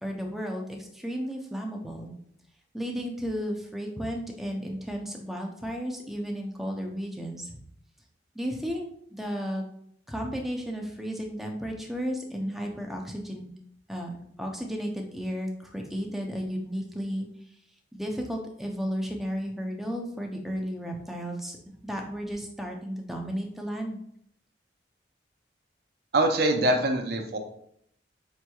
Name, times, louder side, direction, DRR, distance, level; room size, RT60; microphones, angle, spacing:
voice 1, 0.0-2.1 2.7-7.4 8.4-8.8 9.1-9.6 10.1-13.4 13.9-17.3 17.9-21.6 21.8-24.0, equal, ahead, 1 dB, 0.5 m, -33 dB
voice 2, 26.1-27.4, right 1 dB, 60° right, 3 dB, 0.6 m, -23 dB
5.3 x 3.0 x 2.3 m, 0.68 s
head